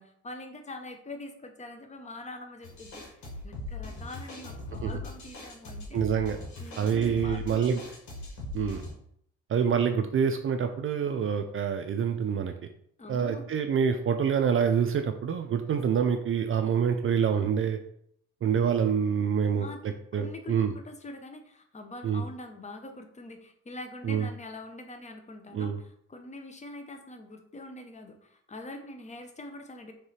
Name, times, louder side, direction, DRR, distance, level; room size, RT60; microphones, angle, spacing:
voice 1, 0.0-3.0 3.4-6.0 6.6-7.7 13.0-13.4 19.5-19.8 20.2-29.9, left 2 dB, 25° left, 5 dB, 0.8 m, -44 dB
sound 1, 2.6-8.9, left 2 dB, 75° left, 1.7 m, -40 dB
voice 2, 5.9-6.4 6.8-7.8 8.5-8.8 9.5-12.5 13.1-17.8 18.4-20.7 22.0-22.2 24.0-24.3 25.5-25.8, right 7 dB, 45° right, 6 dB, 0.4 m, -26 dB
3.7 x 3.3 x 4.2 m, 0.69 s
cardioid pair, 90°, 30 cm